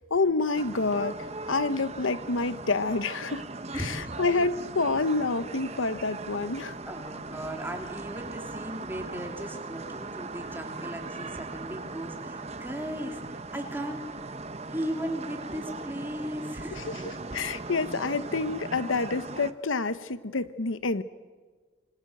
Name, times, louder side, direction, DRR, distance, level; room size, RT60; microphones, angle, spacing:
voice 1, 0.1-1.2 1.5-3.4 3.7-6.8 16.7-21.0, left 3 dB, 85° left, 14 dB, 1.0 m, -28 dB
sound 1, 0.5-19.5, right 3 dB, 30° right, 1.0 m, -39 dB
voice 2, 3.7-4.4 5.7-5.8 6.9-14.0 14.7-17.1, equal, 10° right, 3 dB, 3.1 m, -37 dB
27.0 x 25.0 x 8.0 m, 1.4 s
head